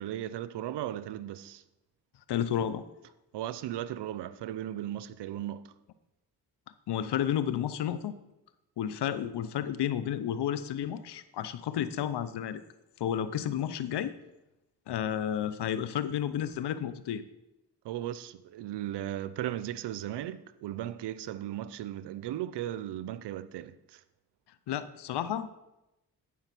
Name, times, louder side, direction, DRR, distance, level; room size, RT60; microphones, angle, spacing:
voice 1, 0.0-1.6 3.3-5.6 17.8-24.0, right 12 dB, 85° right, 0.6 m, -36 dB
voice 2, 2.3-2.8 6.9-8.1 8.8-12.6 13.0-14.1 14.9-17.2 24.7-25.5, left 10 dB, 80° left, 0.7 m, -31 dB
11.0 x 5.0 x 5.9 m
cardioid pair, 55°, 40 cm